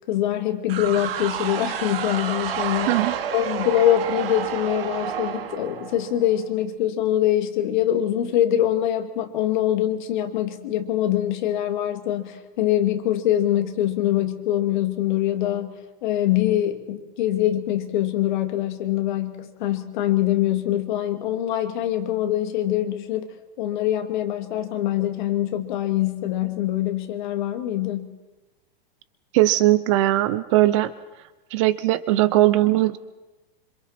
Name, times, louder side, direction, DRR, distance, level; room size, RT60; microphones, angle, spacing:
voice 1, 0.1-2.9 3.3-15.8 16.0-23.3 23.6-28.1, left 12 dB, 50° left, 6 dB, 2.3 m, -24 dB
sound 1, 0.7-6.4, right 9 dB, 75° right, 2.4 m, -29 dB
voice 2, 29.3-30.9 31.5-33.0, right 16 dB, 30° right, 15 dB, 0.6 m, -19 dB
27.0 x 26.5 x 4.3 m, 1.1 s
supercardioid pair, 165°, 29 cm